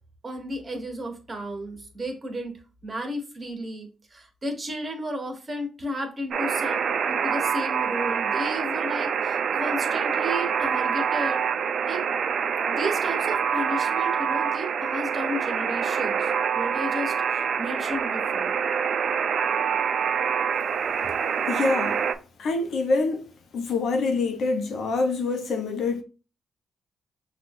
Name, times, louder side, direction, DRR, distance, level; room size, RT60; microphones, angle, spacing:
voice 1, 0.2-11.4 11.9-12.0 12.7-18.6, equal, 30° right, 1.4 m, -33 dB
Alarm, 6.3-22.1, right 7 dB, 60° right, 0.4 m, -26 dB
voice 2, 21.5-22.0 22.4-23.3 23.5-26.0, left 3 dB, 70° left, 0.8 m, -25 dB
6.1 x 2.5 x 2.6 m
cardioid pair, 80°, 0 cm